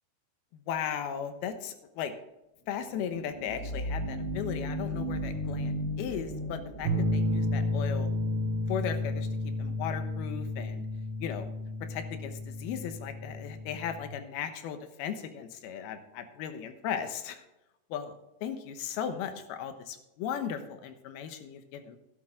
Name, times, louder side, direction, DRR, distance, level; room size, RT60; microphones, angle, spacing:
voice 1, 0.5-2.1 2.7-8.1 8.7-9.3 9.6-10.9 11.2-11.5 11.9-17.4 17.9-18.1 18.4-22.0, left 8 dB, 85° left, 9 dB, 3.0 m, -36 dB
sound 1, 2.9-8.3, equal, 20° left, 5.2 m, -36 dB
sound 2, 6.8-14.1, left 1 dB, 65° right, 3.4 m, -32 dB
12.0 x 11.5 x 3.7 m, 0.95 s
omnidirectional pair, 4.4 m